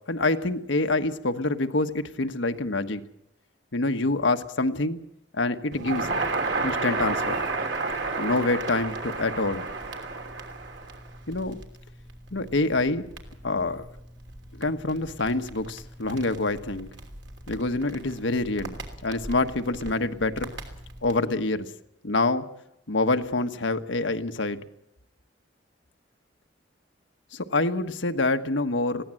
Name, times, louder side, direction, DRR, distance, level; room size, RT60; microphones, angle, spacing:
voice 1, 0.1-3.0 3.7-5.0 5.3-6.1 6.6-7.4 8.2-9.7 11.3-11.6 12.3-13.1 13.4-13.9 14.5-16.9 17.5-18.8 19.0-20.5 21.0-21.7 22.0-22.5 22.9-24.6 27.3-29.0, left 2 dB, 85° left, 8 dB, 1.4 m, -26 dB
Crackle, 5.7-21.2, right 3 dB, 70° right, 3.1 m, -33 dB
21.0 x 16.5 x 7.7 m, 0.80 s
head